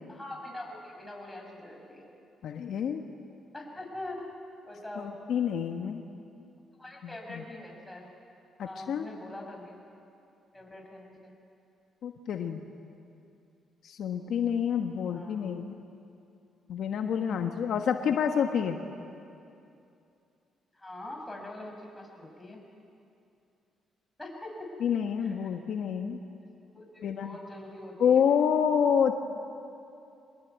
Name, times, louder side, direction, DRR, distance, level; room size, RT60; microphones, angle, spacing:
voice 1, 0.1-2.1 3.5-4.3 4.6-5.1 6.8-8.1 8.6-9.8 10.5-11.3 15.1-15.5 20.7-22.6 24.2-24.7 25.2-25.5 26.7-28.3, left 1 dB, 10° left, 0 dB, 6.2 m, -43 dB
voice 2, 2.4-3.0 5.0-6.0 7.3-7.4 8.6-9.1 12.0-12.7 13.8-15.8 16.7-18.8 24.8-26.2 27.0-27.4 28.0-29.2, left 7 dB, 70° left, 5 dB, 1.3 m, -28 dB
23.5 x 20.0 x 9.3 m, 2.6 s
cardioid pair, 90°, 0 cm